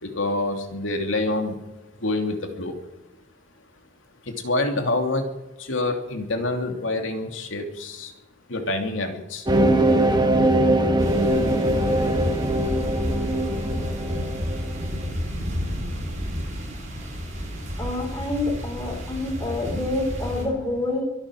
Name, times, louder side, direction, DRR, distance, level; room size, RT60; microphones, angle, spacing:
voice 1, 0.0-1.5 2.0-2.8 4.3-5.2 5.6-8.1 8.5-9.4, left 2 dB, 75° left, 4 dB, 2.8 m, -26 dB
sound 1, 9.5-15.0, right 1 dB, 20° right, 1.4 m, -21 dB
sound 2, 11.0-20.4, equal, 35° right, 5.8 m, -30 dB
voice 2, 17.8-21.0, left 2 dB, 10° left, -4 dB, 4.4 m, -27 dB
24.0 x 8.8 x 6.5 m, 0.98 s
head